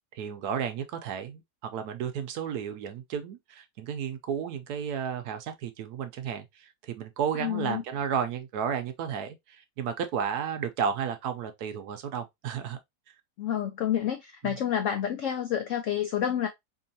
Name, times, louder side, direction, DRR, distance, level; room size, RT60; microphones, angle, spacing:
voice 1, 0.1-12.8 14.4-14.6, right 7 dB, 70° right, 1.0 m, -33 dB
voice 2, 7.3-7.8 13.4-16.5, left 9 dB, 90° left, 0.6 m, -29 dB
4.5 x 2.8 x 2.7 m
omnidirectional pair, 1.9 m